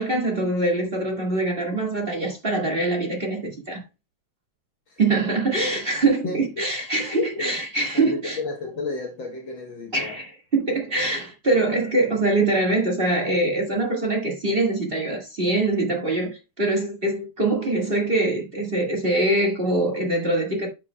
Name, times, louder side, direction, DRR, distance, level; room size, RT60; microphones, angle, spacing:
voice 1, 0.0-3.8 5.0-8.4 9.9-20.7, right 2 dB, 25° right, 1.2 m, -23 dB
voice 2, 6.2-6.7 7.0-7.6 7.9-10.2, left 3 dB, 60° left, 1.3 m, -32 dB
11.0 x 5.9 x 2.2 m
omnidirectional pair, 3.4 m